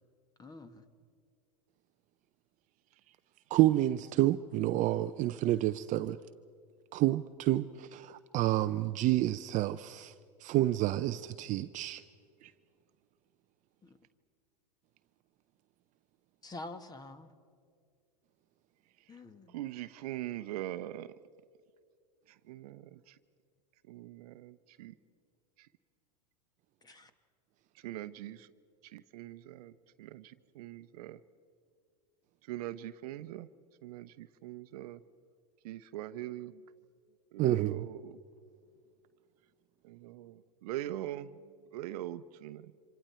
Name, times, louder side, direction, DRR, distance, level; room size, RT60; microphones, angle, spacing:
voice 1, 0.4-0.8 13.8-14.0 16.4-17.3 19.1-19.6 26.8-27.1, left 2 dB, 20° left, 1.6 m, -47 dB
voice 2, 3.5-6.2 6.9-10.1 10.4-12.0 12.4-12.5 37.4-37.9, right 15 dB, 35° right, 0.6 m, -29 dB
voice 3, 19.5-21.1 22.3-23.2 23.9-24.9 25.6-25.7 27.7-28.5 28.8-29.7 30.0-31.2 32.5-33.5 33.8-35.0 35.6-36.6 37.3-38.2 39.8-42.7, right 14 dB, 65° right, 0.8 m, -42 dB
27.5 x 26.0 x 4.4 m
hypercardioid pair, 105°, 21 cm